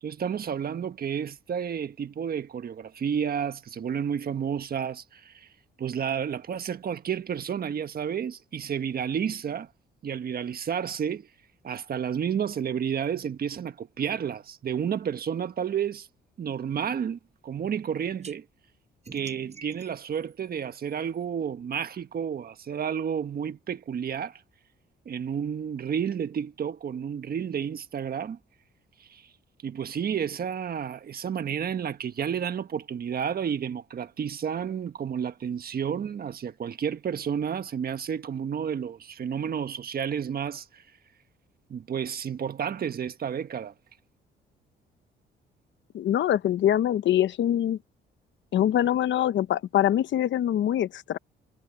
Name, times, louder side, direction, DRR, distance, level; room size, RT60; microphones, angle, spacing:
voice 1, 0.0-5.5 5.8-9.7 10.0-11.3 11.6-16.1 16.4-18.4 19.1-24.4 25.0-28.4 29.1-29.2 29.6-40.8 41.7-43.7, right 8 dB, 50° right, 1.4 m, -31 dB
sound 1, 18.2-18.3 19.0-21.2, right 5 dB, 35° right, 6.4 m, -48 dB
voice 2, 45.9-47.8 48.5-51.2, left 11 dB, 65° left, 1.0 m, -24 dB
cardioid pair, 90°, 20 cm